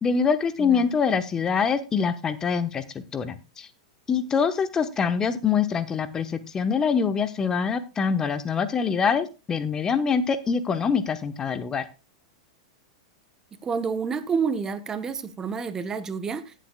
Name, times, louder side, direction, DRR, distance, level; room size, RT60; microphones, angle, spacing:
voice 1, 0.0-2.8 3.1-3.7 4.1-11.8, left 6 dB, 20° left, 12 dB, 0.9 m, -24 dB
voice 2, 13.6-16.5, right 6 dB, 20° right, 12 dB, 1.0 m, -29 dB
18.0 x 7.5 x 2.3 m, 0.29 s
figure-of-eight pair, 95°, 3 cm